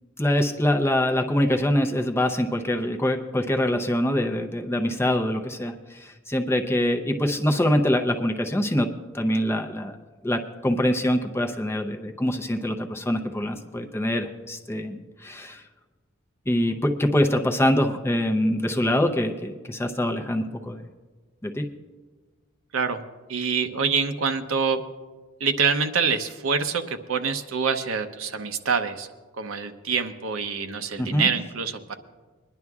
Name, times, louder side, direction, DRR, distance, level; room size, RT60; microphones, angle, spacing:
voice 1, 0.2-8.9 9.1-10.0 10.2-15.6 16.5-20.8 21.4-21.7 31.0-31.3, left 1 dB, 10° left, 4 dB, 0.6 m, -24 dB
voice 2, 23.3-24.8 25.4-29.1 29.4-31.9, right 5 dB, 70° right, 7 dB, 0.7 m, -26 dB
24.5 x 11.0 x 2.4 m, 1.4 s
head